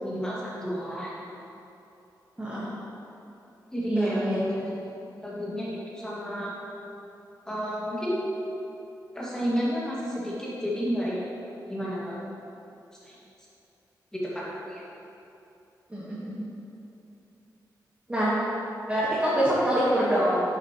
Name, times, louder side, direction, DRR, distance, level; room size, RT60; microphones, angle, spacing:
voice 1, 0.0-1.1 3.7-4.4 5.2-6.5 7.5-8.4 9.1-11.3 11.7-12.2 13.0-13.2 14.1-14.4 14.7-14.8, equal, 10° left, -7 dB, 1.9 m, -31 dB
voice 2, 2.4-2.7 3.9-4.4 15.9-16.4 18.1-18.4 18.9-20.4, right 1 dB, 15° right, -9 dB, 1.3 m, -25 dB
9.4 x 6.8 x 3.0 m, 2.8 s
wide cardioid pair, 140°, 8 cm